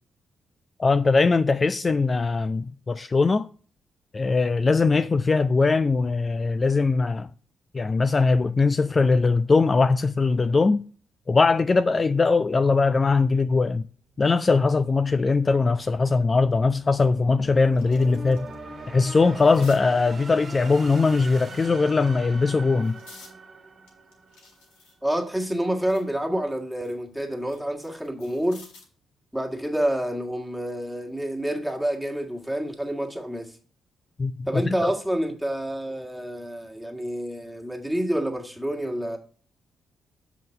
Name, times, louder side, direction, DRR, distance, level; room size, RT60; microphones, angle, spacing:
voice 1, 0.8-3.5 4.1-7.3 7.7-10.8 11.3-13.8 14.2-18.5 18.9-23.0 34.2-34.6, left 4 dB, 35° left, 0.3 m, -21 dB
sound 1, 13.9-24.8, right 2 dB, 45° right, 1.4 m, -42 dB
sound 2, 16.5-16.6 17.1-18.6 18.9-19.8 20.8-21.7 22.3-23.4 23.9-26.1 26.5-29.0 30.4-30.6, left 3 dB, 75° left, 1.8 m, -53 dB
voice 2, 25.0-28.6 29.3-33.6 34.5-39.2, right 1 dB, 5° right, 1.7 m, -28 dB
7.5 x 4.0 x 5.5 m
hypercardioid pair, 40°, 0 cm